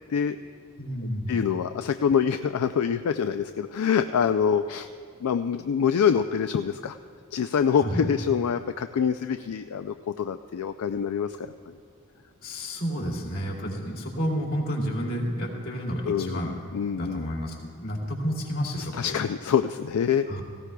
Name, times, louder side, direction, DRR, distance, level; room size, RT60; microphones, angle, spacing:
voice 1, 0.8-1.4 7.8-8.0 12.4-16.5 16.9-19.1 20.3-20.4, equal, 65° left, -3 dB, 2.7 m, -30 dB
voice 2, 1.3-4.9 5.2-7.0 7.3-11.8 16.0-17.2 18.8-20.3, left 7 dB, 85° left, 9 dB, 0.3 m, -25 dB
17.5 x 16.0 x 2.3 m, 2.2 s
head